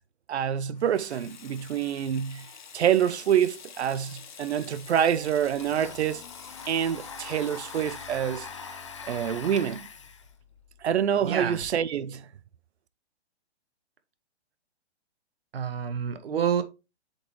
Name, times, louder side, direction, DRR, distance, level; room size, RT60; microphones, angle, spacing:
voice 1, 0.3-2.5 2.7-6.2 6.7-8.5 9.1-9.9 10.8-12.3, right 9 dB, 75° right, 0.7 m, -26 dB
Water tap faucet / Sink (filling or washing), 0.7-10.1, left 7 dB, 45° left, 1.0 m, -49 dB
Domestic sounds home sounds, 4.7-4.8 5.0-11.7, left 5 dB, 30° left, 0.6 m, -43 dB
voice 2, 11.2-11.6 15.5-16.6, right 8 dB, 60° right, 1.2 m, -28 dB
7.4 x 5.4 x 3.0 m
hypercardioid pair, 180°, 33 cm